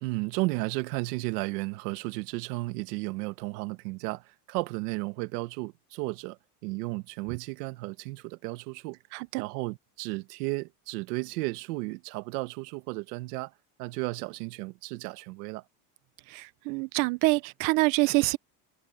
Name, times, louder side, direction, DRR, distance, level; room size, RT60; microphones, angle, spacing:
voice 1, 0.0-9.0 9.4-13.5 13.8-15.6, right 22 dB, 80° right, 1.4 m, -34 dB
voice 2, 9.1-9.4 16.3-18.4, right 23 dB, 45° right, 0.5 m, -26 dB
cardioid pair, 160°, 46 cm